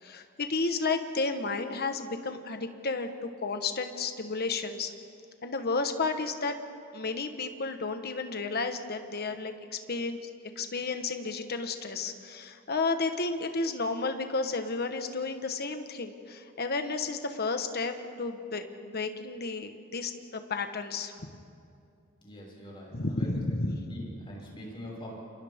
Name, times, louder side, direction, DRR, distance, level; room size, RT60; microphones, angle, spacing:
voice 1, 0.0-4.9 5.4-6.6 6.9-10.3 10.6-21.1 22.9-23.9, left 3 dB, 50° left, 7 dB, 1.3 m, -32 dB
voice 2, 22.2-23.4 23.9-25.1, equal, 25° left, -4 dB, 5.9 m, -44 dB
29.5 x 27.0 x 3.7 m, 2.5 s
head